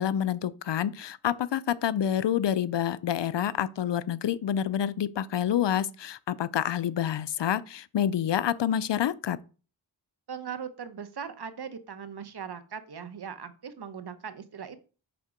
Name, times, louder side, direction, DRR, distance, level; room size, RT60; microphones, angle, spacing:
voice 1, 0.0-9.4, left 10 dB, 65° left, 0.5 m, -28 dB
voice 2, 10.3-14.9, right 7 dB, 55° right, 0.8 m, -39 dB
5.9 x 3.6 x 5.0 m
cardioid pair, 40°, 47 cm